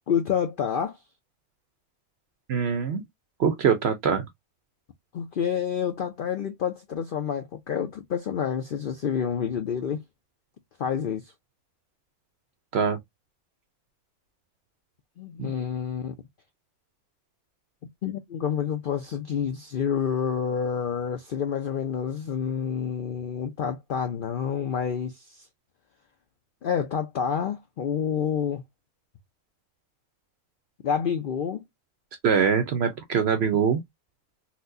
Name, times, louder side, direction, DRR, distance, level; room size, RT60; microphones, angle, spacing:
voice 1, 0.1-1.0 5.1-10.0 10.8-11.3 15.2-16.1 18.0-25.5 26.6-28.6 30.8-31.6, left 7 dB, 85° left, 0.4 m, -28 dB
voice 2, 2.5-3.0 3.4-4.3 12.7-13.0 15.4-15.5 32.2-33.8, right 6 dB, 65° right, 0.6 m, -23 dB
4.1 x 2.1 x 2.5 m
omnidirectional pair, 1.5 m